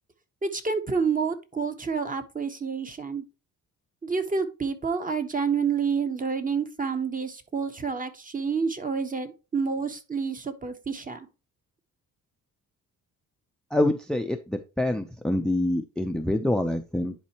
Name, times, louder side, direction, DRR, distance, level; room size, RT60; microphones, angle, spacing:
voice 1, 0.4-3.2 4.0-11.3, right 5 dB, 25° right, 1.1 m, -28 dB
voice 2, 13.7-17.1, left 1 dB, ahead, 0.5 m, -26 dB
10.5 x 4.3 x 2.9 m
cardioid pair, 110°, 33 cm